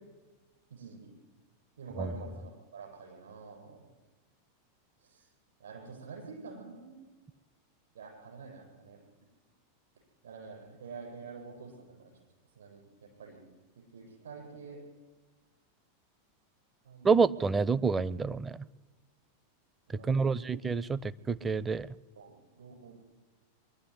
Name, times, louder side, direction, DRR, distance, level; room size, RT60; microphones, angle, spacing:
voice 1, 0.7-1.1 1.8-3.9 5.0-5.3 5.6-7.0 7.9-9.0 10.2-12.1 12.6-12.8 13.2-13.4 13.9-14.8 16.8-17.1 20.0-20.4 22.2-23.0, right 5 dB, 65° right, 0 dB, 7.7 m, -47 dB
voice 2, 17.0-18.6 20.0-21.9, right 5 dB, 15° right, 18 dB, 0.5 m, -28 dB
23.0 x 11.5 x 9.8 m, 1.3 s
figure-of-eight pair, 90°, 0 cm